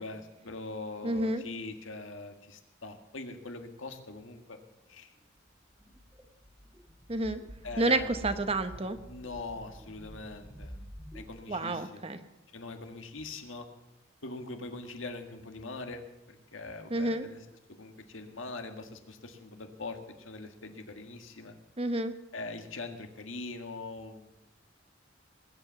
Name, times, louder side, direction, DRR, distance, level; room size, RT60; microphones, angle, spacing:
voice 1, 0.0-4.6 4.9-5.1 7.6-8.1 9.1-10.8 11.1-12.1 12.5-13.7 14.2-21.5 22.3-24.5, left 3 dB, 90° left, 6 dB, 1.7 m, -42 dB
voice 2, 1.0-1.4 7.1-7.4 7.8-9.0 11.5-12.2 16.9-17.3 21.8-22.1, right 2 dB, 30° right, 10 dB, 1.0 m, -29 dB
sound 1, 5.5-11.3, equal, 10° right, 1.6 m, -48 dB
21.0 x 7.9 x 7.0 m, 0.98 s
head